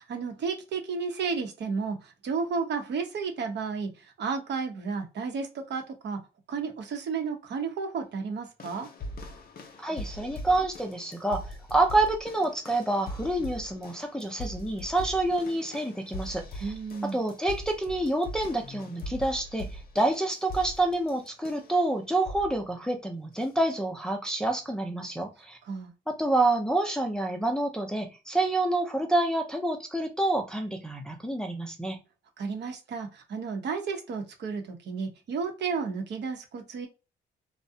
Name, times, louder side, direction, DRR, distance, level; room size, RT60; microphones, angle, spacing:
voice 1, 0.0-6.2 6.5-8.9 16.6-17.2 25.6-25.9 32.4-36.9, right 5 dB, 60° right, 0.7 m, -32 dB
sound 1, 8.6-21.8 22.2-22.6 23.4-23.5, left 1 dB, 50° left, 0.7 m, -41 dB
voice 2, 9.8-16.7 17.1-25.6 26.1-32.0, right 2 dB, 5° left, 0.5 m, -28 dB
2.4 x 2.0 x 2.7 m
cardioid pair, 90°, 20 cm